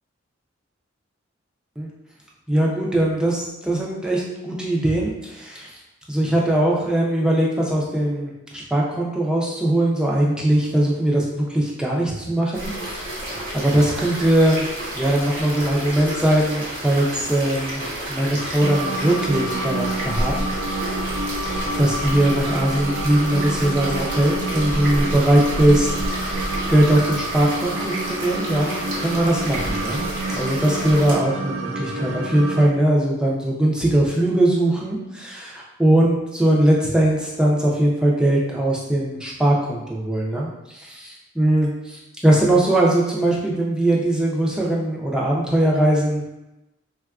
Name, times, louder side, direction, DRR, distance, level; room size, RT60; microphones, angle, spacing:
voice 1, 2.5-5.7 6.1-14.6 15.0-17.8 18.1-20.5 21.4-25.9 26.2-46.2, right 1 dB, 5° right, -4 dB, 0.4 m, -20 dB
sound 1, 12.5-31.1, right 1 dB, 50° right, 1.0 m, -30 dB
sound 2, 18.6-32.7, right 2 dB, 80° right, 0.3 m, -29 dB
3.6 x 2.3 x 2.4 m, 0.95 s
head